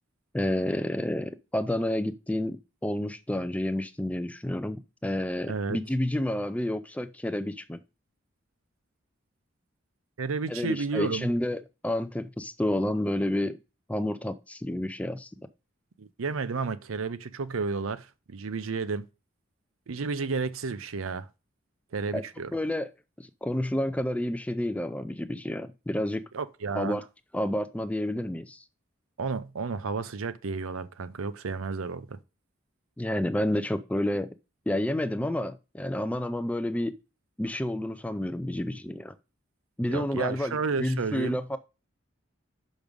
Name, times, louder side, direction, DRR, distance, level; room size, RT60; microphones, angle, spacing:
voice 1, 0.3-2.6 2.8-7.8 10.5-13.6 13.9-15.5 22.1-22.2 22.5-22.9 23.2-26.2 26.8-27.0 27.3-28.6 33.0-34.3 34.7-36.9 37.4-39.1 39.8-41.6, left 1 dB, 5° left, 0.4 m, -30 dB
voice 2, 5.5-5.8 10.2-11.3 16.0-19.1 19.9-21.3 21.9-22.5 26.3-27.0 29.2-32.2 39.9-41.4, right 4 dB, 80° right, 0.6 m, -32 dB
6.1 x 5.3 x 5.2 m
head